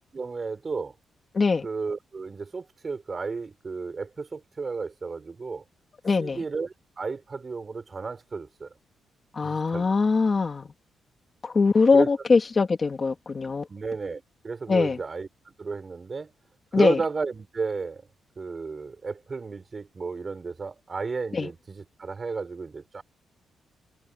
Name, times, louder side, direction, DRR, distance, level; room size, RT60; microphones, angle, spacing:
voice 1, 0.1-0.9 1.6-5.6 6.2-8.7 9.4-9.9 11.9-12.1 13.7-15.3 15.6-16.3 16.7-18.0 18.4-23.0, right 4 dB, 25° right, 6.5 m, -33 dB
voice 2, 1.3-1.6 6.0-6.4 9.4-10.7 11.4-13.7 14.7-15.0 16.7-17.0 21.3-21.5, left 4 dB, 25° left, 2.4 m, -22 dB
wide cardioid pair, 170°, 0 cm